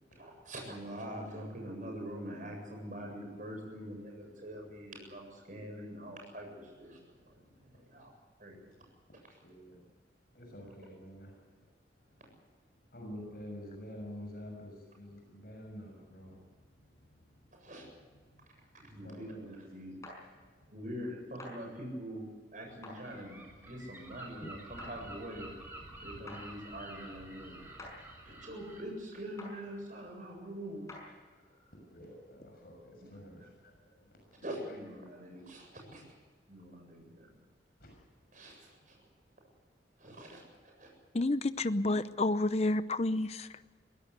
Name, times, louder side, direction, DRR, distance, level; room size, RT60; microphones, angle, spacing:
voice 1, 0.2-7.0 7.6-8.1 8.4-8.8 17.5-17.8 18.7-19.9 20.7-22.2 22.5-25.5 26.0-27.6 28.2-30.9 34.4-36.0 36.5-37.3 38.3-38.9 40.0-40.9, equal, 45° right, 7.7 m, -44 dB
voice 2, 9.3-9.9 10.3-11.7 12.0-17.7 18.1-18.6 18.9-19.4 20.4-20.7 27.8-28.4 30.3-30.4 31.3-31.4 31.7-34.8 35.0-35.5 37.8-38.3 38.6-39.1 41.6-42.2, equal, 55° left, 6.6 m, -51 dB
sound 1, 20.0-20.2 21.4-21.6 22.8-23.0 24.8-24.9 26.3-26.4 27.8-28.0 29.4-29.6 30.9-31.1, left 2 dB, 15° left, 5.8 m, -46 dB
Gull seagull, 23.0-28.8, right 2 dB, 10° right, 6.5 m, -49 dB
voice 3, 41.1-43.6, left 2 dB, 35° left, 0.7 m, -30 dB
23.5 x 17.0 x 8.2 m
head